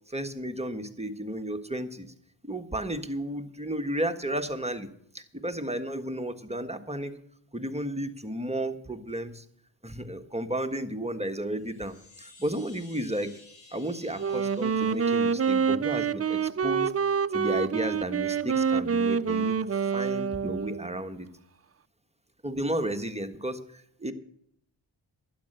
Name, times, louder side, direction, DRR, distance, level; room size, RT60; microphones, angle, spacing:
voice 1, 0.1-2.1 2.4-4.9 5.1-7.1 7.5-9.4 9.8-13.3 13.7-16.9 17.3-19.5 19.9-21.3 22.4-24.1, right 1 dB, 15° right, 7 dB, 1.5 m, -33 dB
Chime, 11.5-16.2, left 3 dB, 70° left, 5.8 m, -55 dB
Wind instrument woodwind instrument, 14.2-20.9, right 6 dB, 30° right, 0.5 m, -27 dB
12.0 x 10.0 x 6.7 m, 0.69 s
cardioid pair, 45°, 46 cm